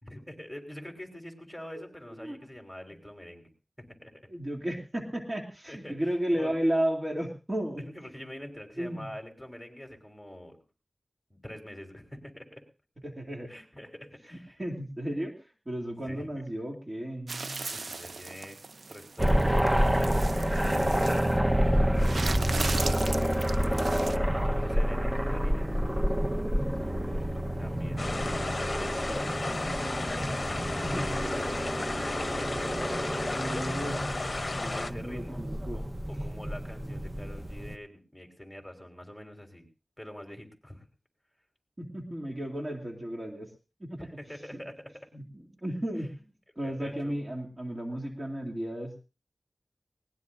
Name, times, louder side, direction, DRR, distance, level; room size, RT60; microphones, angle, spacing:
voice 1, 0.0-3.5 3.8-4.1 5.7-6.5 7.8-10.6 11.3-12.7 13.5-14.6 16.1-16.4 17.7-18.6 18.9-19.4 19.7-20.5 21.1-22.3 23.0-23.8 24.4-25.7 27.6-28.5 30.9-32.7 34.6-35.4 35.7-39.7 40.0-40.9 44.0-45.1 46.6-47.1, left 1 dB, ahead, 3 dB, 3.5 m, -45 dB
voice 2, 4.3-7.8 8.8-9.1 13.0-13.5 14.6-15.3 15.7-17.7 29.1-30.0 30.8-31.0 33.2-35.8 41.8-43.5 43.8-44.1 45.1-46.1 46.6-49.0, right 1 dB, 35° right, -1 dB, 2.5 m, -34 dB
sound 1, 17.3-21.3 21.9-24.2, right 3 dB, 90° right, 0.7 m, -37 dB
sound 2, 19.2-37.8, equal, 20° right, 1.0 m, -28 dB
sound 3, 28.0-34.9, left 2 dB, 50° left, 0.8 m, -34 dB
20.5 x 19.0 x 2.6 m, 0.33 s
wide cardioid pair, 50°, 0 cm